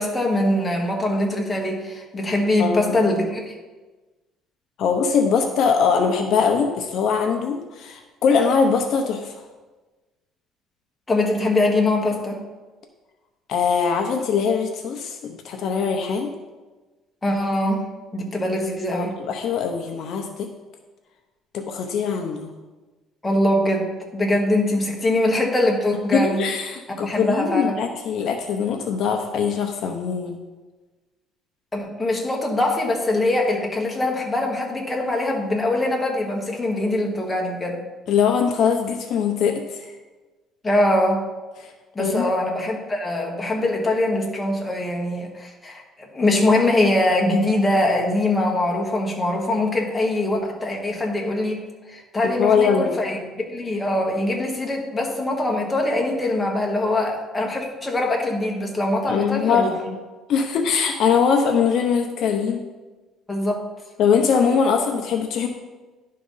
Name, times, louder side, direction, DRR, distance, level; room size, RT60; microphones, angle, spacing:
voice 1, 0.0-3.6 11.1-12.4 17.2-17.9 18.1-19.1 23.2-26.4 27.0-27.8 31.7-37.8 40.6-41.2 41.9-51.6 51.9-53.2 53.5-59.7 63.3-63.6, left 1 dB, 15° left, 0 dB, 1.3 m, -22 dB
voice 2, 2.6-3.0 4.8-9.3 13.5-16.3 18.9-20.5 21.5-22.5 26.1-30.4 38.1-39.9 41.6-41.7 42.0-42.3 52.2-52.9 59.1-60.0 60.3-62.6 64.0-65.5, left 6 dB, 55° left, 4 dB, 0.7 m, -22 dB
11.0 x 3.8 x 5.6 m, 1.2 s
cardioid pair, 145°, 0 cm